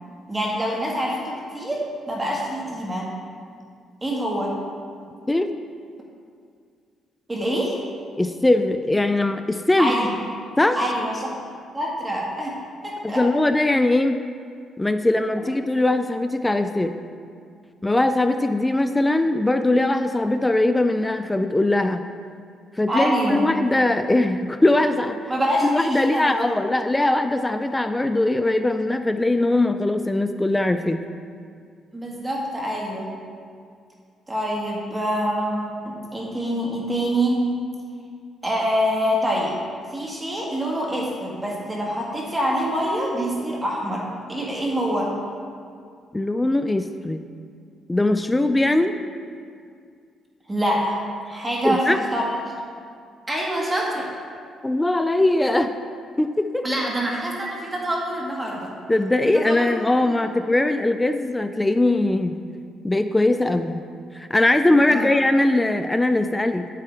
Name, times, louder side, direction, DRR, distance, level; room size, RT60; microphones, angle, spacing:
voice 1, 0.3-3.1 4.0-4.5 7.3-7.8 9.8-10.1 10.8-11.4 11.7-12.5 12.8-13.3 22.9-23.5 25.3-26.4 31.9-33.1 34.3-37.4 38.4-39.6 39.9-45.1 50.5-51.0 51.3-52.3 53.3-54.1 56.6-58.7 59.3-59.7 60.0-60.2 64.9-65.0, equal, 20° right, -2 dB, 1.5 m, -25 dB
voice 2, 5.3-5.6 8.2-9.9 10.6-10.8 13.0-14.2 14.8-16.9 17.8-22.1 22.8-25.2 25.7-31.0 46.1-47.2 47.9-48.9 51.6-52.0 54.6-55.7 56.2-56.6 58.9-62.4 62.8-63.8 64.1-66.7, left 2 dB, 15° left, 9 dB, 0.3 m, -21 dB
9.4 x 8.3 x 3.4 m, 2.2 s
cardioid pair, 90°, 0 cm